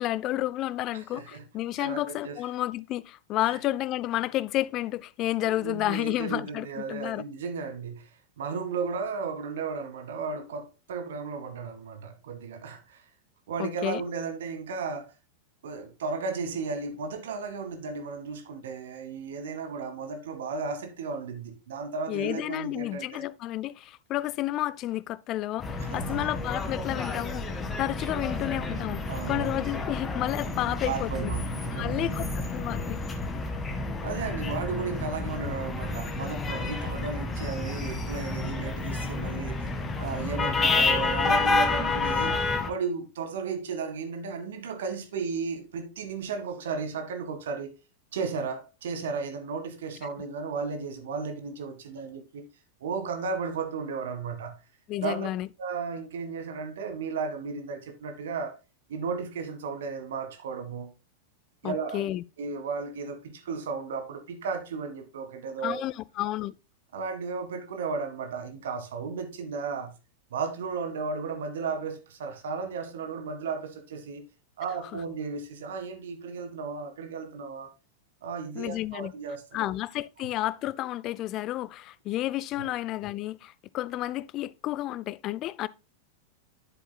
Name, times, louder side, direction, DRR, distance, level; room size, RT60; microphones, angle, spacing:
voice 1, 0.0-7.2 13.6-14.0 22.1-27.4 27.8-31.3 31.7-33.0 54.9-55.5 61.6-62.2 65.6-66.5 74.9-75.0 78.6-79.1 79.5-85.7, left 15 dB, 35° left, 0.4 m, -31 dB
voice 2, 0.9-1.4 1.8-2.4 3.4-3.6 5.5-13.0 13.5-15.1 15.6-23.2 25.8-26.3 29.1-29.6 30.6-32.3 34.0-39.7 40.0-47.8 48.1-52.4 52.8-54.6 55.0-55.3 55.6-58.5 58.9-60.9 61.6-62.1 62.4-65.9 66.9-70.0 70.3-74.2 74.6-77.7 78.2-79.7 82.6-82.7, right 5 dB, 60° right, 1.7 m, -34 dB
sound 1, 25.6-42.7, left 3 dB, 15° left, 1.6 m, -30 dB
9.9 x 7.8 x 2.2 m
figure-of-eight pair, 90°, 0 cm